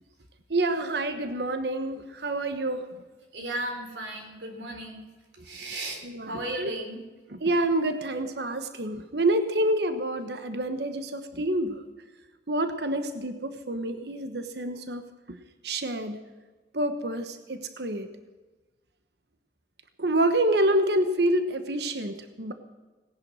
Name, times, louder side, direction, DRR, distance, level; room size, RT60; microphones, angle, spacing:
voice 1, 0.5-2.9 6.1-6.7 7.4-11.8 12.5-15.0 15.3-15.4 15.6-16.2 16.7-18.1 20.0-22.5, right 1 dB, 60° right, 8 dB, 1.2 m, -27 dB
voice 2, 3.3-5.0 5.4-7.0, right 1 dB, 80° right, 2 dB, 4.0 m, -35 dB
18.5 x 10.5 x 6.3 m, 1.2 s
head